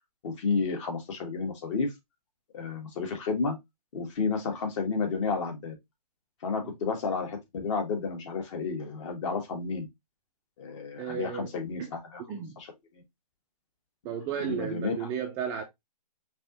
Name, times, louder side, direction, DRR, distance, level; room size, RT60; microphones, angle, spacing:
voice 1, 0.2-1.9 2.5-3.6 3.9-5.7 6.4-9.9 10.6-12.2 12.6-12.7 14.4-15.0, left 4 dB, 50° left, 1.5 m, -31 dB
voice 2, 11.0-11.5 11.8-11.9 12.3-12.6 14.0-15.6, right 8 dB, 15° right, 0.3 m, -34 dB
5.2 x 2.9 x 2.5 m
hypercardioid pair, 145°, 20 cm